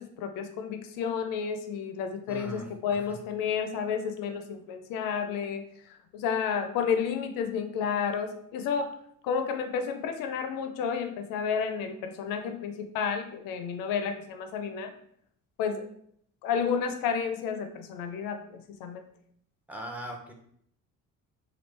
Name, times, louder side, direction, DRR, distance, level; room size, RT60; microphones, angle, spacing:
voice 1, 0.0-8.9 9.2-14.9 15.6-15.9 16.4-19.0, left 6 dB, 85° left, 7 dB, 0.5 m, -31 dB
voice 2, 2.3-3.2 19.7-20.3, right 1 dB, 5° right, 1 dB, 0.5 m, -40 dB
3.1 x 2.4 x 3.2 m, 0.67 s
cardioid pair, 105°, 33 cm